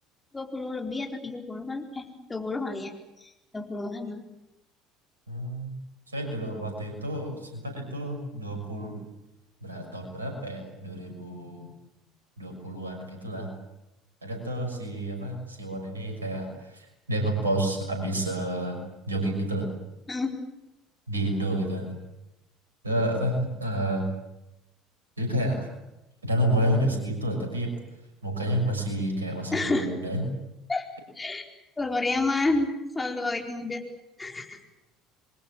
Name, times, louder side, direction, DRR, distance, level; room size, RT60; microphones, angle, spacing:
voice 1, 0.3-2.9 3.2-4.2 20.1-20.4 29.5-29.9 30.7-30.9 31.2-31.4 31.8-33.8 34.2-34.6, left 2 dB, 15° left, 2 dB, 4.4 m, -30 dB
voice 2, 5.3-5.7 6.1-9.0 9.6-11.8 12.4-13.5 14.2-19.7 21.1-22.0 22.8-24.1 25.2-25.7 26.2-27.7 28.2-30.3, right 1 dB, 80° right, 4 dB, 6.1 m, -29 dB
28.0 x 23.0 x 7.4 m, 0.93 s
figure-of-eight pair, 60°, 0 cm